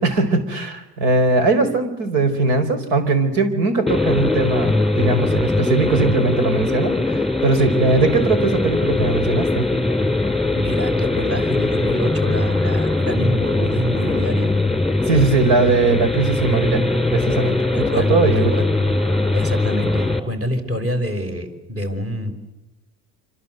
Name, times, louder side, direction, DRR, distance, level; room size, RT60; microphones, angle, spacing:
voice 1, 0.0-9.6 15.1-16.8 17.1-18.5, right 3 dB, 60° right, 10 dB, 4.9 m, -20 dB
sound 1, 3.9-20.2, left 2 dB, ahead, 3.1 m, -20 dB
voice 2, 10.5-14.5 17.7-18.7 19.3-22.3, equal, 30° right, 5 dB, 5.7 m, -26 dB
27.0 x 26.0 x 8.0 m, 1.0 s
hypercardioid pair, 85°, 48 cm